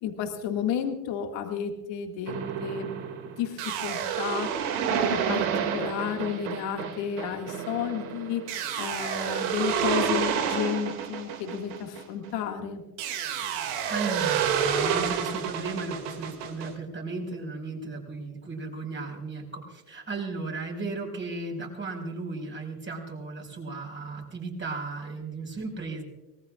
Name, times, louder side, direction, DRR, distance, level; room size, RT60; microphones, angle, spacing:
voice 1, 0.0-2.9 3.4-4.5 4.9-5.5 5.7-8.4 8.8-12.8, left 8 dB, 65° left, 3 dB, 2.2 m, -32 dB
sound 1, 2.3-12.4 13.0-16.7, right 8 dB, 85° right, 2.5 m, -29 dB
voice 2, 13.9-26.0, right 3 dB, 25° right, 1 dB, 5.3 m, -35 dB
24.5 x 19.0 x 2.5 m, 1.1 s
cardioid pair, 115°, 46 cm